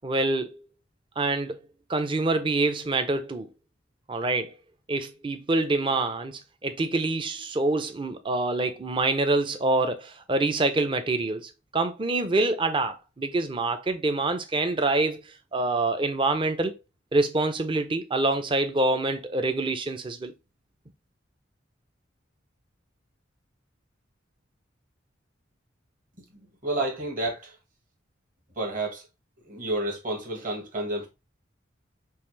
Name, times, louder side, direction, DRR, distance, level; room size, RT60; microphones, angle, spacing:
voice 1, 0.0-0.7 1.2-1.6 1.9-3.5 4.1-4.5 4.9-15.2 15.5-16.8 17.1-20.3, right 2 dB, 25° right, 0.5 m, -26 dB
voice 2, 26.6-27.6 28.5-29.0 29.4-31.1, right 2 dB, 45° right, 1.6 m, -30 dB
5.5 x 2.4 x 3.2 m
head